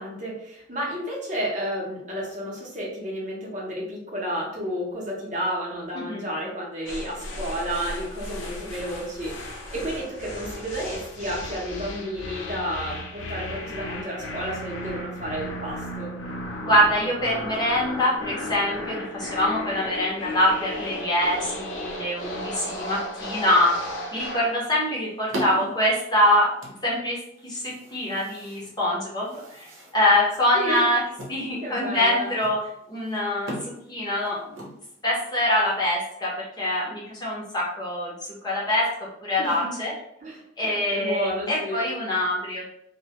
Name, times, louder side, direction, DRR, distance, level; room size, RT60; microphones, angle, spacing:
voice 1, 0.0-16.1 25.5-25.6 30.5-30.9 31.6-32.3 39.4-39.7 40.2-41.9, equal, 40° right, -4 dB, 0.7 m, -31 dB
sound 1, 6.9-24.5, left 1 dB, 80° left, 0.5 m, -35 dB
voice 2, 16.6-23.8 24.1-26.5 26.8-31.0 31.3-32.6 32.9-34.7 35.0-38.1 38.4-38.9 39.2-39.9 40.6-42.6, left 1 dB, 20° left, -5 dB, 0.6 m, -24 dB
sound 2, 24.3-35.4, equal, 85° right, 0.7 m, -40 dB
2.2 x 2.1 x 2.7 m, 0.74 s
head